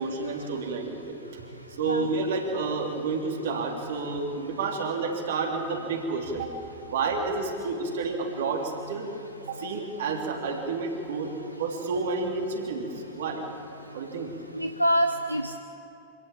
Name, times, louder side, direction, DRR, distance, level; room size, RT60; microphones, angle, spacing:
voice 1, 0.0-1.4 1.8-6.5 6.9-9.1 9.5-11.3 11.6-13.5 13.9-14.4, right 4 dB, 60° right, 2 dB, 3.6 m, -30 dB
voice 2, 14.5-15.6, equal, 90° right, 7 dB, 0.8 m, -25 dB
26.0 x 17.0 x 8.8 m, 2.9 s
figure-of-eight pair, 90°, 0 cm